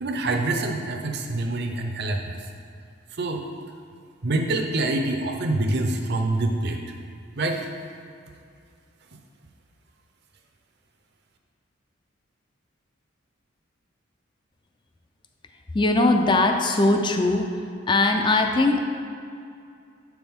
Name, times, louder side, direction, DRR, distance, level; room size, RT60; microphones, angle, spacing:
voice 1, 0.0-2.4 3.2-3.5 4.2-6.8 7.4-7.7, right 2 dB, 55° right, 4 dB, 0.7 m, -26 dB
voice 2, 15.7-17.6 17.9-18.8, left 2 dB, 25° left, 4 dB, 0.4 m, -20 dB
7.8 x 6.0 x 3.6 m, 2.4 s
head